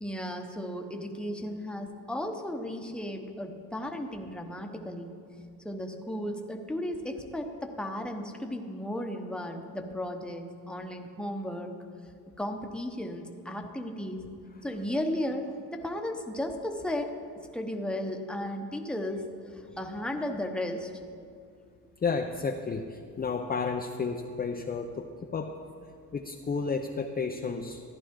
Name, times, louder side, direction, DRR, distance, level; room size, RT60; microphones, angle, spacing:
voice 1, 0.0-5.2 5.6-11.8 12.4-14.3 14.6-17.1 17.5-19.2 19.5-20.9, left 1 dB, ahead, 3 dB, 1.0 m, -35 dB
voice 2, 22.0-25.6 26.1-27.8, left 5 dB, 25° left, 3 dB, 0.6 m, -32 dB
14.5 x 11.0 x 3.7 m, 2.3 s
cardioid pair, 105°, 40 cm